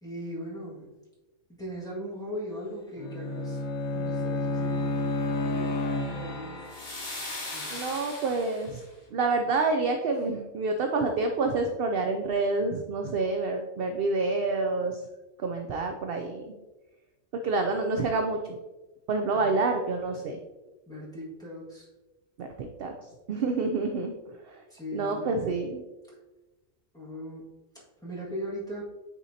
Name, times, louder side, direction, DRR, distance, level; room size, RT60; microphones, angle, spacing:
voice 1, 0.0-0.9 1.6-3.6 3.9-5.8 6.1-6.7 7.5-7.7 10.1-10.3 19.3-19.6 20.9-21.9 24.7-25.7 26.9-28.8, equal, 5° left, -7 dB, 1.7 m, -39 dB
Bowed string instrument, 3.0-6.6, left 2 dB, 70° left, 0.9 m, -30 dB
sound 1, 4.2-8.8, left 2 dB, 40° left, 1.5 m, -40 dB
voice 2, 7.7-8.8 9.1-15.0 15.4-16.5 17.4-18.6 19.1-20.4 22.4-22.9 23.3-24.1 24.5-24.6 24.9-25.8, right 3 dB, 60° right, 4 dB, 0.7 m, -28 dB
8.2 x 4.3 x 2.7 m, 1.1 s
omnidirectional pair, 1.3 m